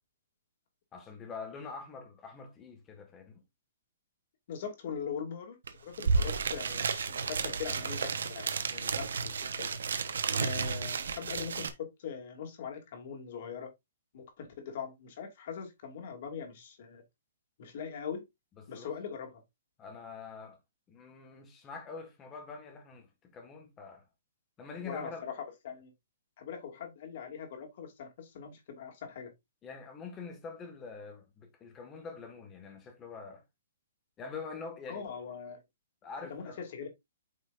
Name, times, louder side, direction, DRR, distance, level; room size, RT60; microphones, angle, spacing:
voice 1, 0.9-3.4 18.6-19.0 19.8-20.6 20.9-24.0 24.6-25.3 29.6-33.4 34.2-35.1 36.0-36.6, left 5 dB, 15° left, 1.7 m, -45 dB
voice 2, 4.5-9.8 10.3-13.7 14.1-17.0 17.6-18.2 18.7-19.4 24.8-25.3 25.6-25.9 26.4-29.3 34.9-35.6 36.2-36.9, left 7 dB, 40° left, 2.6 m, -41 dB
sound 1, 5.7-5.8 5.9-11.7, right 5 dB, 80° right, 1.2 m, -32 dB
9.0 x 5.6 x 2.6 m
hypercardioid pair, 170°, 0 cm